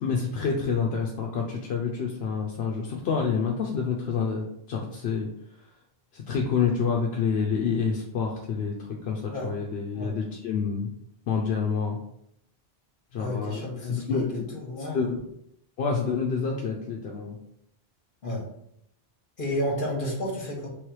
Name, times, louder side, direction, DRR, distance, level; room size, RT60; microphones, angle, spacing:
voice 1, 0.0-5.3 6.1-10.9 11.3-12.0 13.1-13.6 13.9-15.2 15.8-17.4, left 5 dB, 80° left, -1 dB, 0.9 m, -28 dB
voice 2, 13.1-15.1 18.2-18.4 19.4-20.7, left 1 dB, 55° left, -1 dB, 1.5 m, -31 dB
3.5 x 3.2 x 4.6 m, 0.75 s
omnidirectional pair, 1.0 m